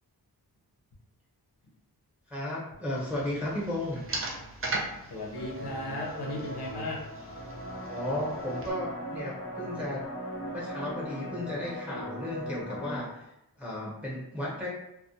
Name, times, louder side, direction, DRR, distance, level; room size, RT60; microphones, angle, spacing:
voice 1, 2.3-4.0 7.8-10.1 10.5-14.7, left 1 dB, 5° right, -6 dB, 0.8 m, -34 dB
sound 1, 3.0-8.7, right 2 dB, 35° right, 0.4 m, -39 dB
voice 2, 5.0-7.1, left 2 dB, 85° left, -2 dB, 0.7 m, -36 dB
sound 2, 5.3-13.0, equal, 35° left, 0.5 m, -39 dB
2.2 x 2.1 x 2.7 m, 0.86 s
wide cardioid pair, 100°, 39 cm